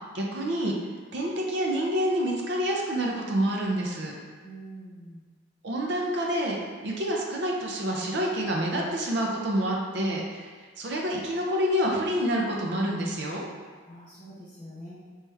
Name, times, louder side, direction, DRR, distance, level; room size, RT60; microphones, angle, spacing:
voice 1, 0.1-0.7 1.1-4.2 5.6-6.5 6.8-10.5 10.8-13.4, equal, 60° right, -1 dB, 0.5 m, -27 dB
voice 2, 4.4-5.3 13.8-14.9, right 1 dB, 30° left, -12 dB, 1.4 m, -44 dB
3.2 x 3.0 x 3.4 m, 1.5 s
head